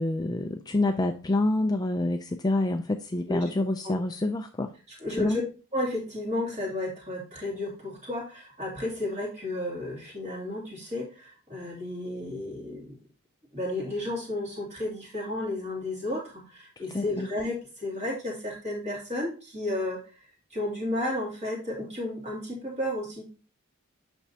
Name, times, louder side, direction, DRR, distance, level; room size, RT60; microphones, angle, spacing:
voice 1, 0.0-4.7 5.2-5.4 16.9-17.3, left 2 dB, 15° left, 6 dB, 0.3 m, -27 dB
voice 2, 5.0-5.4 5.7-12.9 13.5-23.3, left 1 dB, 30° right, -3 dB, 2.7 m, -33 dB
8.8 x 6.1 x 2.8 m, 0.34 s
head